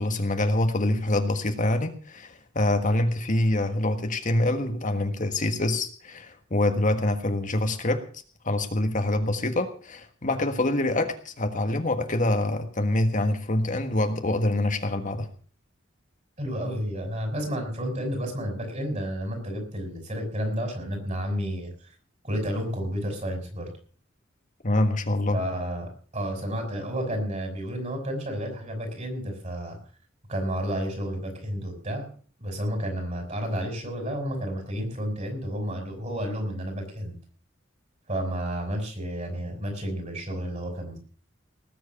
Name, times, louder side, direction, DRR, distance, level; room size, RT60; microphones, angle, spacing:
voice 1, 0.0-8.0 8.4-15.3 24.6-25.4, left 1 dB, 40° left, 6 dB, 1.5 m, -25 dB
voice 2, 16.4-21.9 22.2-23.7 25.3-29.8 30.3-32.1 32.4-37.2 38.1-41.0, equal, 35° right, 4 dB, 5.7 m, -31 dB
19.0 x 7.8 x 7.0 m, 0.43 s
head